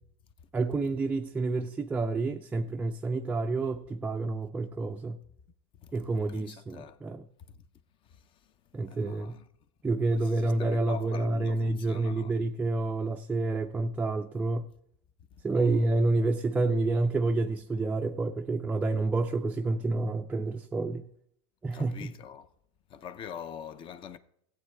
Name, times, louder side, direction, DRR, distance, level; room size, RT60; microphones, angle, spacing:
voice 1, 0.5-5.2 5.9-7.2 8.7-9.4 9.8-14.7 15.4-21.0 21.6-22.1, right 2 dB, 10° right, 0.3 m, -29 dB
voice 2, 6.3-7.0 7.5-7.6 8.1-8.2 8.9-9.5 10.2-12.3 15.5-15.9 21.7-22.5 22.9-24.2, left 8 dB, 35° left, 0.6 m, -44 dB
14.5 x 8.4 x 3.3 m
supercardioid pair, 130°, 14 cm